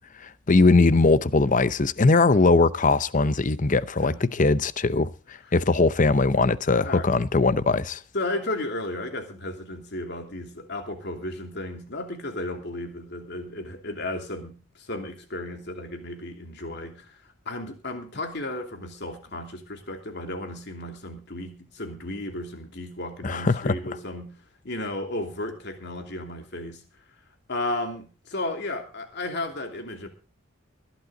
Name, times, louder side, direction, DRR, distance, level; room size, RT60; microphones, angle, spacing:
voice 1, 0.5-5.1 5.5-8.0 23.2-23.7, left 3 dB, 40° left, 0.7 m, -20 dB
voice 2, 8.1-17.2 17.5-24.3 24.6-26.8 27.5-30.1, left 1 dB, 55° left, 2.8 m, -34 dB
20.5 x 11.0 x 3.9 m
head